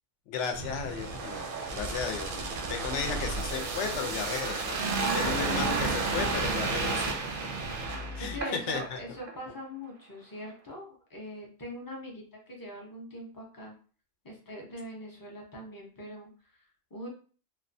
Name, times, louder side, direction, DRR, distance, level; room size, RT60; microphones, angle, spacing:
voice 1, 0.3-1.4 1.7-4.8 5.1-7.1 8.1-9.0, left 6 dB, 75° left, 4 dB, 0.9 m, -34 dB
sound 1, 0.5-8.9 9.2-9.4, right 3 dB, 60° right, 0.6 m, -32 dB
voice 2, 8.1-13.8 14.2-17.1, equal, 25° left, -1 dB, 0.4 m, -42 dB
2.9 x 2.1 x 2.5 m, 0.40 s
omnidirectional pair, 1.2 m